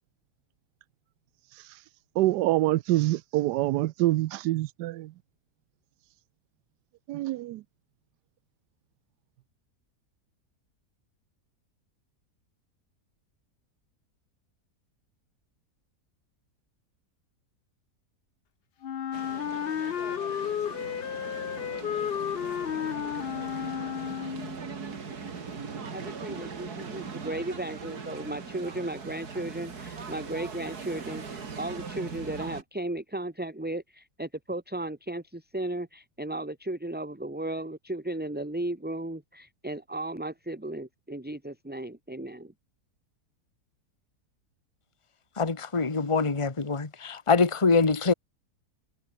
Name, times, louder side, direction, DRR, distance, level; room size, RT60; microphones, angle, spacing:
voice 1, 2.2-5.1 7.1-7.6, right 16 dB, 90° right, 1.2 m, -26 dB
Wind instrument woodwind instrument, 18.8-24.6, left 9 dB, 55° left, 0.7 m, -32 dB
sound 1, 19.1-32.6, right 5 dB, 70° right, 2.9 m, -40 dB
voice 2, 25.9-42.5, right 1 dB, 5° right, 1.5 m, -35 dB
voice 3, 45.4-48.1, left 4 dB, 20° left, 1.5 m, -24 dB
omnidirectional pair, 1.7 m